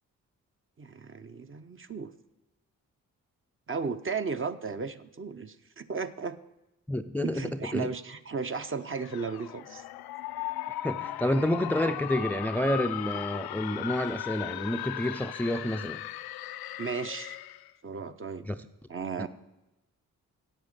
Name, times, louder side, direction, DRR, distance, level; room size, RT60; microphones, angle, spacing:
voice 1, 0.8-2.1 3.7-6.4 7.2-9.8 16.8-17.4 17.8-18.5 18.9-19.3, right 5 dB, 35° right, 9 dB, 0.8 m, -35 dB
voice 2, 6.9-7.4 7.7-7.9 10.8-16.0 18.5-18.6 19.2-19.3, left 1 dB, 5° left, 10 dB, 0.4 m, -29 dB
sound 1, 8.8-17.7, left 13 dB, 80° left, 0.5 m, -37 dB
9.0 x 8.0 x 6.6 m, 0.95 s
cardioid pair, 55°, 36 cm